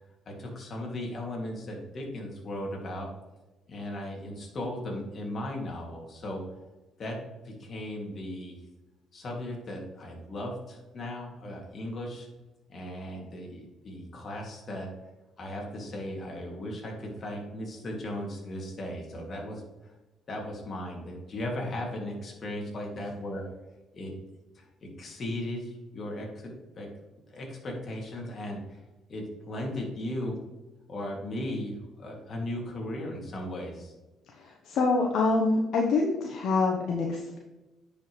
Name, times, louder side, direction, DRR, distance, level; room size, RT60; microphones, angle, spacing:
voice 1, 0.3-3.1 3.7-6.5 7.0-7.2 7.4-8.6 9.1-12.3 12.7-14.9 15.4-19.9 20.3-23.4 23.9-24.1 24.5-26.9 27.3-28.8 29.1-30.4 30.9-33.9, left 1 dB, 50° left, 0 dB, 2.5 m, -37 dB
voice 2, 34.3-37.4, left 3 dB, 70° left, 0 dB, 1.0 m, -26 dB
9.9 x 5.4 x 3.2 m, 1.1 s
supercardioid pair, 70°, 0 cm